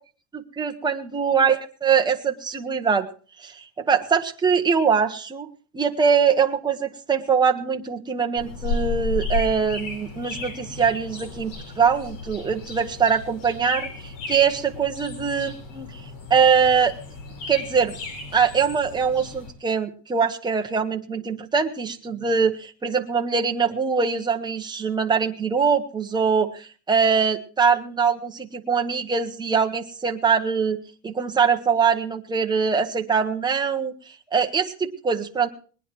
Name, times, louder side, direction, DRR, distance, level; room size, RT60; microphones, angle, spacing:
voice 1, 0.3-3.1 3.4-5.5 5.7-15.9 16.3-16.9 17.5-18.0 18.3-30.8 31.0-33.9 34.3-35.5, right 6 dB, 10° right, 3 dB, 0.9 m, -22 dB
sound 1, 8.4-19.5, left 3 dB, 75° left, 4.8 m, -34 dB
20.0 x 10.0 x 4.5 m, 0.39 s
supercardioid pair, 160°, 50 cm